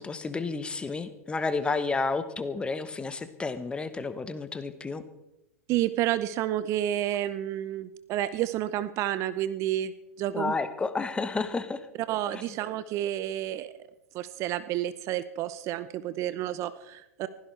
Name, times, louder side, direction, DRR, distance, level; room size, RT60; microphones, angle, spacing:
voice 1, 0.0-5.0 10.3-11.9 12.3-12.4, left 4 dB, 15° left, 12 dB, 1.2 m, -31 dB
voice 2, 5.7-9.9 10.2-10.5 12.1-13.7 14.1-17.3, right 12 dB, 40° right, 14 dB, 0.8 m, -30 dB
23.5 x 16.0 x 3.3 m, 0.93 s
figure-of-eight pair, 100°, 8 cm